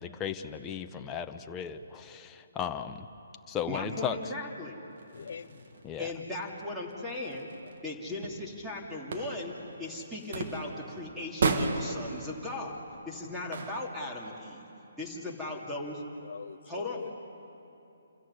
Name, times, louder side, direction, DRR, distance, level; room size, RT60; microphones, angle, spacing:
voice 1, 0.0-3.1 3.5-4.2 5.8-6.1, left 8 dB, 15° left, 0.8 m, -36 dB
voice 2, 3.7-4.8 6.0-7.5 7.8-12.8 13.1-14.6 15.0-16.0 16.7-17.0, left 2 dB, 5° right, 2.8 m, -37 dB
sound 1, 4.9-13.9, right 4 dB, 55° right, 1.9 m, -36 dB
voice 3, 5.1-5.8 7.6-7.7 16.2-17.1, left 6 dB, 60° left, 0.7 m, -43 dB
28.0 x 14.0 x 9.7 m
hypercardioid pair, 150°, 0 cm